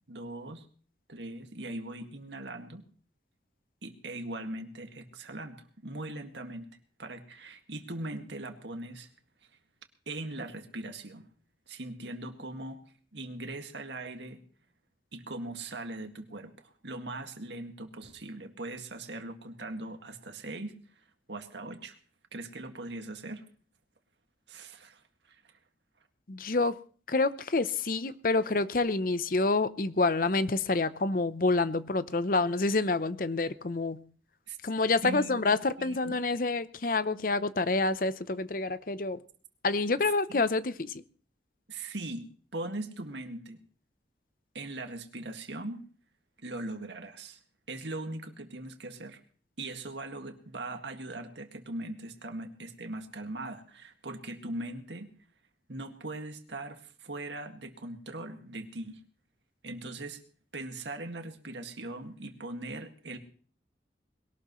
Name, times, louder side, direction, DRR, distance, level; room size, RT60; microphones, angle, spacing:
voice 1, 0.1-0.7 1.1-2.8 3.8-6.7 7.0-9.1 10.1-11.3 11.7-12.8 13.1-14.4 15.1-20.7 21.3-22.0 22.3-23.4 24.5-25.0 25.3-25.4 34.5-34.6 35.0-35.4 35.8-36.2 40.3-40.4 41.7-43.6 44.5-45.8 46.4-47.4 47.7-49.2 49.6-55.1 55.7-59.0 59.6-60.2 60.5-63.2, right 2 dB, 80° right, 5 dB, 2.0 m, -40 dB
voice 2, 26.3-26.8 27.1-34.0 34.6-39.2 39.6-41.0, left 3 dB, 50° left, 15 dB, 0.7 m, -28 dB
21.5 x 18.0 x 3.1 m, 0.43 s
head